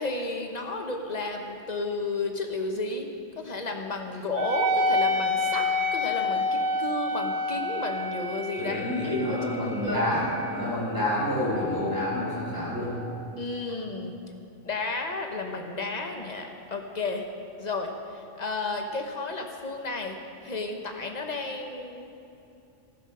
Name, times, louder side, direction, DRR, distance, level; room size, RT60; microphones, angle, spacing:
voice 1, 0.0-3.1 3.3-9.4 9.6-10.0 13.4-14.1 14.6-17.3 17.6-20.2 20.4-22.1, left 3 dB, 35° left, 3 dB, 1.2 m, -32 dB
Wind instrument woodwind instrument, 4.4-13.3, left 1 dB, 85° right, 1.2 m, -30 dB
voice 2, 8.6-12.9, left 1 dB, 15° right, -8 dB, 4.1 m, -28 dB
15.0 x 9.2 x 6.2 m, 2.7 s
omnidirectional pair, 1.3 m